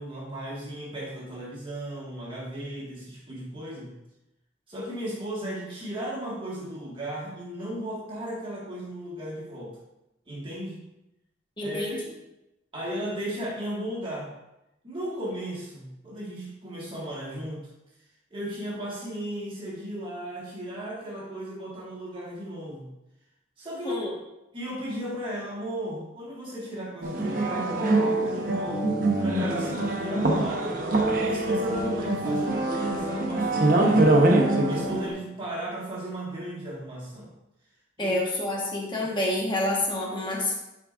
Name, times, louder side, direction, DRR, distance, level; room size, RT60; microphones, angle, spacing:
voice 1, 0.0-4.0 4.7-9.8 10.3-10.8 11.6-12.0 12.7-14.3 14.8-17.7 18.3-22.9 23.6-24.0 24.5-30.8 31.2-34.2 34.7-37.3 38.0-38.2, right 1 dB, 30° right, -6 dB, 1.7 m, -35 dB
voice 2, 11.6-12.0 23.8-24.1 38.0-40.6, left 1 dB, 25° left, -3 dB, 1.3 m, -28 dB
sound 1, 27.0-35.1, right 2 dB, 50° right, 0.9 m, -24 dB
10.5 x 4.7 x 2.5 m, 0.91 s
head